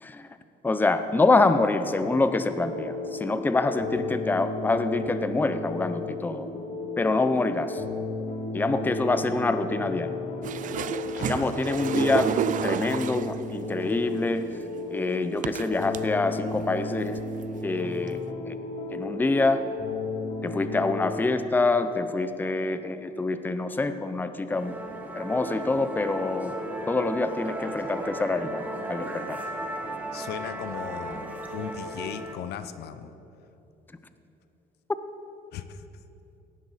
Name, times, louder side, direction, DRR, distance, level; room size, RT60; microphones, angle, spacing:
voice 1, 0.6-6.5 7.0-7.8 8.5-10.2 11.2-12.3 12.6-14.4 14.9-17.2 17.6-18.2 18.5-18.6 18.9-19.6 20.4-24.7 25.1-26.5 26.9-28.6 28.9-29.4, left 3 dB, 10° left, 10 dB, 0.6 m, -26 dB
sound 1, 2.0-21.1, left 3 dB, 45° left, 1.8 m, -34 dB
sound 2, 10.4-13.4 14.4-14.5 15.4-16.0 16.6-16.7 17.0-17.4 18.2-18.3, right 9 dB, 50° right, 0.5 m, -30 dB
voice 2, 10.7-11.8 30.1-33.1 35.5-35.9, left 8 dB, 75° left, 11 dB, 0.8 m, -38 dB
Musical instrument, 24.5-32.4, right 1 dB, 10° right, 1.4 m, -35 dB
18.0 x 11.0 x 4.1 m, 2.9 s
cardioid pair, 110°, 17 cm